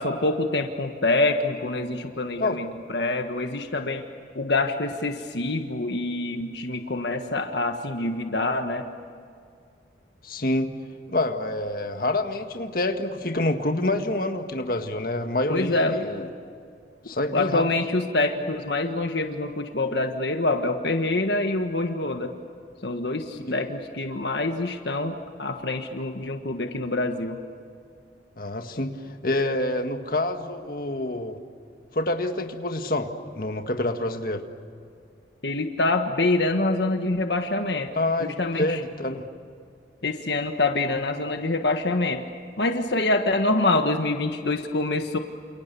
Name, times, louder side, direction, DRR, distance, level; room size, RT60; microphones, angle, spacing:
voice 1, 0.0-4.0 4.3-8.9 15.5-16.0 17.3-22.3 22.8-27.4 35.4-37.9 38.2-38.8 40.0-42.2 42.6-45.2, left 2 dB, 70° left, 5 dB, 1.6 m, -26 dB
voice 2, 10.2-10.8 11.1-16.3 17.1-17.6 23.4-23.5 28.4-31.4 31.9-34.4 38.0-39.2, left 2 dB, 50° left, 5 dB, 1.8 m, -27 dB
29.0 x 28.5 x 7.0 m, 2.3 s
head